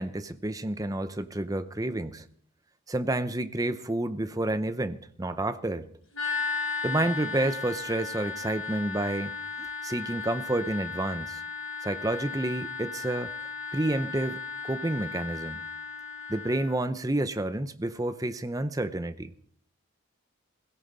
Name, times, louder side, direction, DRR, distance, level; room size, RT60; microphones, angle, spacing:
voice 1, 0.0-2.3 2.9-5.9 6.8-11.4 11.8-13.3 13.7-15.6 16.3-19.3, right 1 dB, 15° right, 0.6 m, -30 dB
sound 1, 6.1-16.8, left 4 dB, 65° left, 5.1 m, -35 dB
18.0 x 16.5 x 4.0 m
head